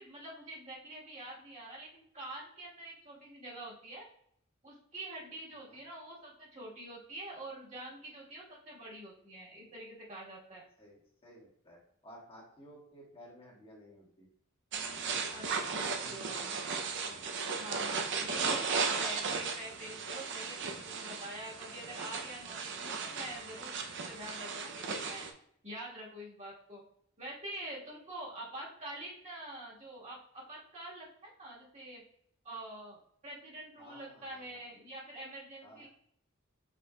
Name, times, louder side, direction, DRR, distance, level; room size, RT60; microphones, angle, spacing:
voice 1, 0.0-4.1 4.6-10.6 15.3-16.6 17.6-25.3 25.6-26.8 27.2-32.0 32.4-33.0 33.2-35.9, right 1 dB, 35° right, -6 dB, 1.6 m, -46 dB
voice 2, 10.8-14.3 15.0-15.2 16.0-16.6 17.3-17.7 18.2-18.7 33.8-34.6 35.6-35.9, equal, 25° left, -4 dB, 1.4 m, -55 dB
sound 1, 14.7-25.3, right 5 dB, 55° right, 0.6 m, -36 dB
5.3 x 4.3 x 2.3 m, 0.67 s
head